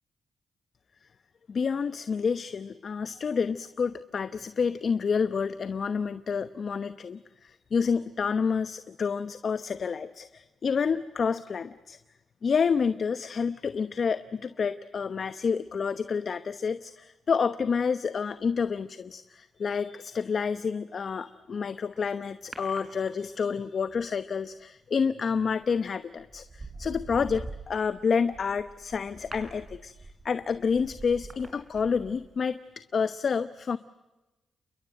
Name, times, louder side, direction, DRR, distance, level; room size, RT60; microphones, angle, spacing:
voice 1, 1.5-12.0 12.4-32.6 32.9-33.8, left 6 dB, 55° left, 12 dB, 1.0 m, -29 dB
sound 1, 22.5-23.6 25.4-25.7 26.2-32.4 32.7-32.8, right 3 dB, 35° right, 6.6 m, -44 dB
29.5 x 22.5 x 7.8 m, 1.0 s
supercardioid pair, 55°, 0 cm